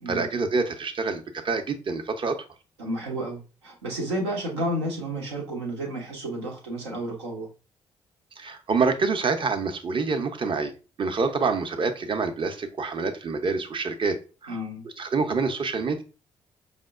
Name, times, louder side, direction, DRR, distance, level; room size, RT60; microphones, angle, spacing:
voice 1, 0.1-2.4 8.4-10.7 11.0-14.2 14.4-14.6 15.0-16.0, right 4 dB, 40° right, 7 dB, 0.6 m, -26 dB
voice 2, 2.8-7.5 14.5-14.8, right 1 dB, 85° right, -1 dB, 0.8 m, -31 dB
4.9 x 2.1 x 2.4 m, 0.34 s
hypercardioid pair, 40°, 14 cm